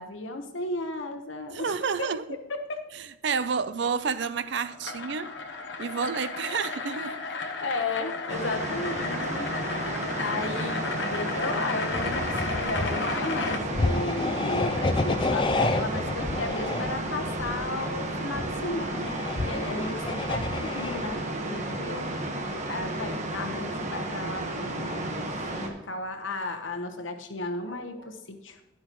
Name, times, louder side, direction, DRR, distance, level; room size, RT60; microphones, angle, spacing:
voice 1, 0.0-2.1 2.7-2.8 6.8-22.1 22.7-28.6, left 2 dB, 85° left, 1.2 m, -35 dB
voice 2, 1.5-2.4 2.9-5.3 5.8-7.2, right 5 dB, 65° right, 0.5 m, -30 dB
sound 1, 4.1-13.6, left 3 dB, 65° left, 0.9 m, -34 dB
sound 2, 8.3-25.7, right 2 dB, 35° right, 1.3 m, -33 dB
sound 3, 11.9-21.2, left 2 dB, 25° left, 0.4 m, -30 dB
11.5 x 10.5 x 3.1 m
head